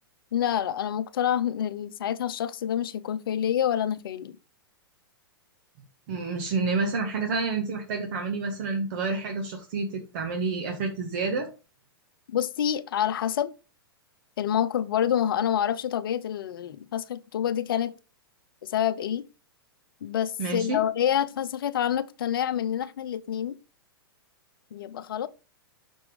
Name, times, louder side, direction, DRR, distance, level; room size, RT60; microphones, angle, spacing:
voice 1, 0.3-4.4 12.3-13.5 14.4-17.9 18.6-19.2 20.0-23.6 24.7-25.3, left 10 dB, 65° left, 0.8 m, -27 dB
voice 2, 6.1-11.5 20.4-20.8, right 4 dB, 50° right, 1.7 m, -29 dB
6.2 x 6.0 x 5.0 m
hypercardioid pair, 110°, 13 cm